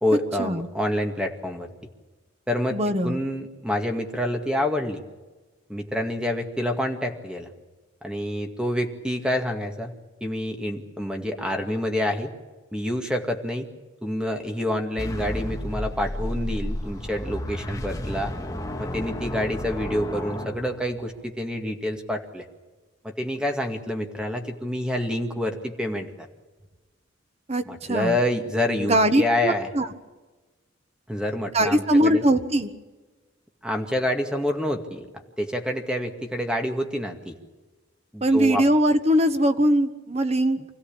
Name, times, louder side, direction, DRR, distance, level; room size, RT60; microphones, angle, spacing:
voice 1, 0.0-1.7 2.5-5.0 5.7-7.5 8.0-9.9 10.2-12.3 12.7-13.7 14.0-18.3 18.8-22.5 23.0-26.3 27.7-29.7 31.1-32.2 33.6-35.1 35.4-37.4 38.1-38.6, left 1 dB, 5° right, 4 dB, 2.1 m, -27 dB
voice 2, 2.7-3.2 27.5-28.2 28.8-29.9 31.5-32.7 38.2-40.6, right 1 dB, 30° right, 9 dB, 1.4 m, -21 dB
sound 1, 15.0-21.2, equal, 15° left, 1.8 m, -32 dB
25.5 x 16.0 x 8.8 m, 1.2 s
head